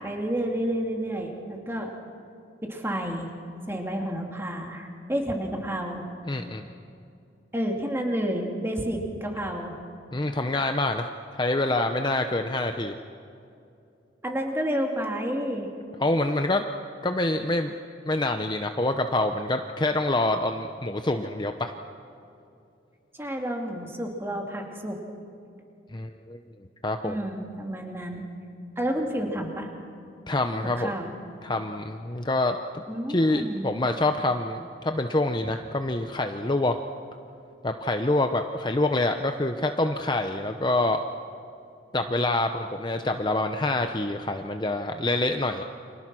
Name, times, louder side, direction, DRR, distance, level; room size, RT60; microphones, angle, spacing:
voice 1, 0.0-2.0 2.6-3.3 3.7-6.1 7.5-9.8 14.2-15.7 23.1-25.0 27.0-28.2 28.8-29.7 30.7-31.1 32.9-33.7 35.4-35.5, equal, 15° right, 1 dB, 2.6 m, -30 dB
voice 2, 6.2-6.6 10.1-12.9 16.0-16.6 17.0-17.7 18.1-21.7 25.9-26.4 26.8-27.2 30.3-30.9 31.4-32.8 33.1-36.8 37.6-41.0 41.9-45.6, left 2 dB, 25° left, 6 dB, 0.7 m, -26 dB
29.5 x 25.5 x 6.2 m, 2.6 s
head